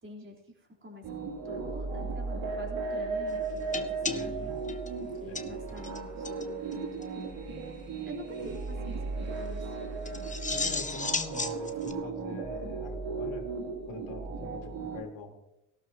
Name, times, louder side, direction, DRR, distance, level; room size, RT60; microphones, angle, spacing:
voice 1, 0.0-4.5 5.2-7.0 8.0-9.8, equal, 25° right, -1 dB, 3.9 m, -47 dB
sound 1, 1.0-15.0, right 4 dB, 70° right, 3.1 m, -36 dB
sound 2, 3.7-6.0 6.2-6.5 6.7-6.8 7.0-7.1 10.1-11.9, left 4 dB, 15° left, 1.0 m, -35 dB
voice 2, 4.0-4.6 5.3-5.4 10.5-13.5 13.8-15.3, left 4 dB, 70° left, 3 dB, 2.9 m, -44 dB
18.5 x 12.5 x 2.9 m, 0.91 s
supercardioid pair, 75°, 48 cm